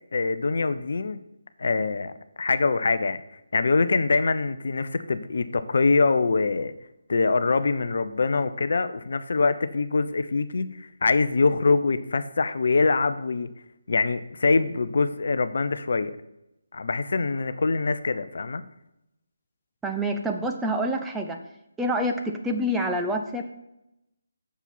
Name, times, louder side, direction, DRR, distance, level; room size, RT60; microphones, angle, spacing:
voice 1, 0.1-1.2 1.6-2.1 2.4-3.2 3.5-6.7 7.1-13.5 13.9-16.2 16.7-18.6, left 4 dB, 55° left, 12 dB, 0.6 m, -24 dB
voice 2, 19.8-21.4 21.8-23.4, equal, 5° right, 3 dB, 0.6 m, -27 dB
8.1 x 6.9 x 5.9 m, 0.87 s
figure-of-eight pair, 145°, 0 cm